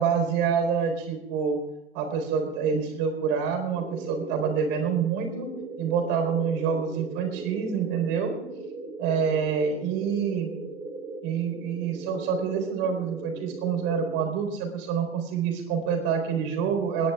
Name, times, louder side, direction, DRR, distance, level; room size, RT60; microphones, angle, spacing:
voice 1, 0.0-1.6 1.9-5.5 5.8-8.3 9.0-10.5 11.2-17.1, right 6 dB, 35° right, 5 dB, 4.0 m, -27 dB
sound 1, 3.7-14.3, right 3 dB, 15° right, 2.0 m, -38 dB
28.0 x 10.5 x 3.5 m, 0.94 s
hypercardioid pair, 140°, 33 cm